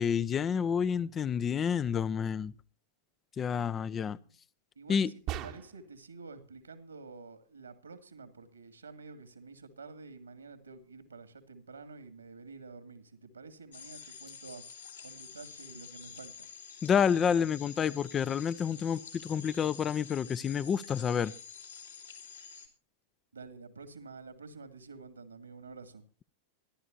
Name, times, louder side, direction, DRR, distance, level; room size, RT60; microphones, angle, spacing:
voice 1, 0.0-2.5 3.4-4.2 4.9-5.1 16.8-21.3, left 7 dB, 25° left, 0.6 m, -29 dB
voice 2, 4.8-14.6 15.0-16.5 23.3-26.0, right 4 dB, 75° right, 2.5 m, -49 dB
sound 1, 5.3-6.0, right 12 dB, 40° right, 1.2 m, -38 dB
sound 2, 13.7-22.7, left 6 dB, 75° left, 3.4 m, -48 dB
26.0 x 12.0 x 2.6 m
figure-of-eight pair, 90°, 0 cm